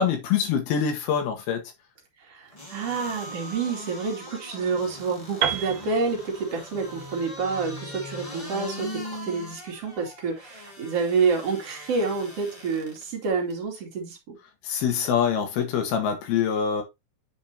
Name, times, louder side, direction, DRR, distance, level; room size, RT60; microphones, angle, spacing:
voice 1, 0.0-1.6 14.6-16.8, left 7 dB, 80° left, 3.6 m, -24 dB
voice 2, 2.2-14.4, right 4 dB, 45° right, 3.1 m, -28 dB
sound 1, 2.5-13.0 13.5-13.6, left 1 dB, 20° left, 1.0 m, -41 dB
Piano, 3.0-5.9, right 3 dB, 55° left, 1.4 m, -44 dB
Piano 2, 5.4-9.3, right 9 dB, 80° right, 2.8 m, -33 dB
9.3 x 5.1 x 2.8 m
omnidirectional pair, 4.4 m